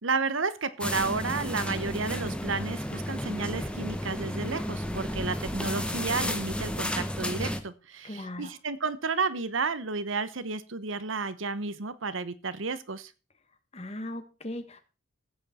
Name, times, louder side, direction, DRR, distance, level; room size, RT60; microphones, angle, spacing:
voice 1, 0.0-13.1, right 4 dB, 85° right, 14 dB, 1.1 m, -32 dB
sound 1, 0.8-7.6, equal, 5° left, 1.1 m, -32 dB
voice 2, 8.0-8.5 13.7-14.8, left 1 dB, 35° left, 9 dB, 1.5 m, -38 dB
15.0 x 8.6 x 4.3 m, 0.33 s
head